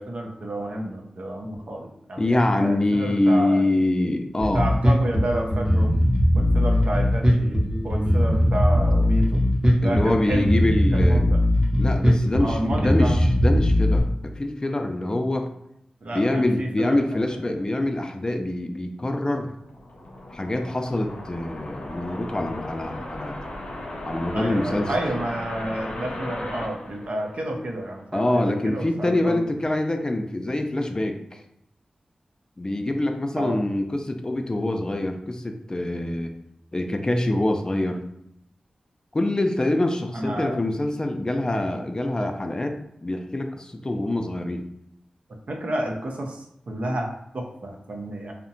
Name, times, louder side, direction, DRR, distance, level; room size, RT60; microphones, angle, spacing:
voice 1, 0.0-3.6 4.5-5.9 6.3-7.6 7.8-9.4 9.8-10.5 10.9-11.4 12.4-13.1 16.0-17.6 24.3-29.4 33.4-33.6 40.1-40.6 45.5-47.1 47.3-48.3, right 1 dB, 70° right, 1 dB, 0.5 m, -30 dB
voice 2, 2.2-4.7 9.8-11.3 11.8-15.5 16.1-19.5 20.3-23.4 24.1-24.9 28.1-31.4 32.6-36.3 36.7-38.0 39.1-44.6, left 1 dB, 30° left, 5 dB, 0.3 m, -25 dB
Bass guitar, 4.4-14.0, left 1 dB, 25° right, 0.7 m, -20 dB
sound 1, 19.6-27.8, left 1 dB, 90° left, 0.5 m, -36 dB
2.7 x 2.1 x 2.6 m, 0.78 s
cardioid pair, 40°, 2 cm